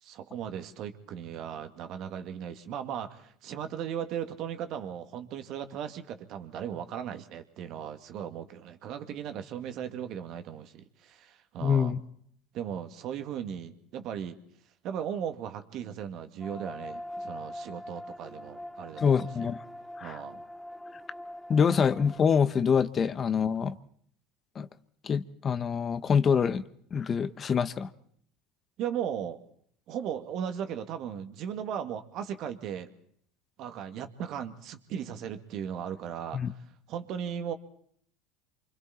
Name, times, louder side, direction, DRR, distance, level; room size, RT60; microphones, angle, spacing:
voice 1, 0.0-12.0 12.5-14.4 14.8-19.5 20.0-20.4 28.8-29.4 29.9-32.9 33.6-37.5, right 9 dB, 55° right, 8 dB, 2.3 m, -37 dB
voice 2, 11.6-12.0 19.0-19.6 20.0-20.2 21.5-23.7 24.6-24.7 25.0-26.6 26.9-27.9 36.3-36.5, left 6 dB, 35° left, 14 dB, 1.1 m, -25 dB
sound 1, 16.4-22.2, left 1 dB, 5° left, 2.9 m, -43 dB
27.5 x 25.5 x 4.4 m, 0.63 s
hypercardioid pair, 80°, 0 cm